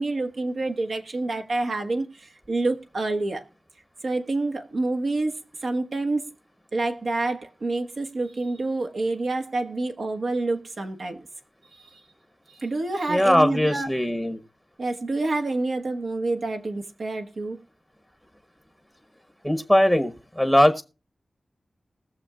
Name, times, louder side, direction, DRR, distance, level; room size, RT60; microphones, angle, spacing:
voice 1, 0.0-3.4 4.0-5.3 5.6-6.2 6.7-11.3 11.7-12.0 12.5-13.9 14.8-17.6, right 2 dB, 70° right, 1.5 m, -28 dB
voice 2, 13.1-14.4 19.4-20.8, left 1 dB, ahead, 1.0 m, -20 dB
20.0 x 7.0 x 2.4 m
wide cardioid pair, 115°, 0 cm